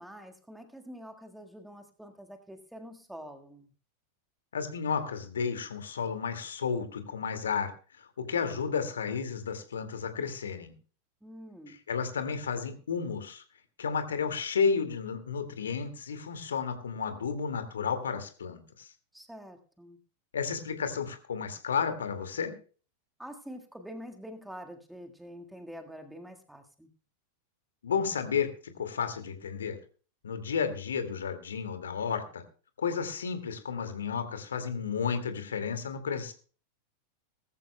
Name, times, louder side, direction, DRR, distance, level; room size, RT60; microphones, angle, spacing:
voice 1, 0.0-3.7 11.2-11.8 19.1-20.0 23.2-26.9, equal, 5° right, 5 dB, 1.6 m, -46 dB
voice 2, 4.5-10.7 11.7-13.4 13.8-18.9 20.3-22.6 27.8-29.8 30.2-32.4 32.8-36.3, left 6 dB, 65° left, 8 dB, 2.1 m, -32 dB
20.0 x 14.0 x 2.2 m, 0.37 s
figure-of-eight pair, 90°, 0 cm